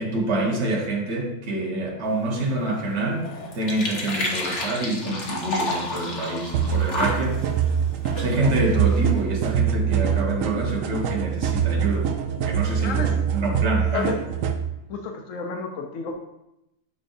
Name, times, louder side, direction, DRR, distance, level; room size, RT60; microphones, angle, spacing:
voice 1, 0.0-3.3 3.5-7.4 8.1-14.1, right 2 dB, 60° right, -1 dB, 1.5 m, -26 dB
sound 1, 2.0-9.2, left 2 dB, 65° left, 1.4 m, -32 dB
sound 2, 6.5-14.6, right 8 dB, 80° right, 1.0 m, -24 dB
voice 2, 14.9-16.2, left 5 dB, 80° left, 3 dB, 1.1 m, -31 dB
8.3 x 5.2 x 2.6 m, 0.87 s
omnidirectional pair, 1.3 m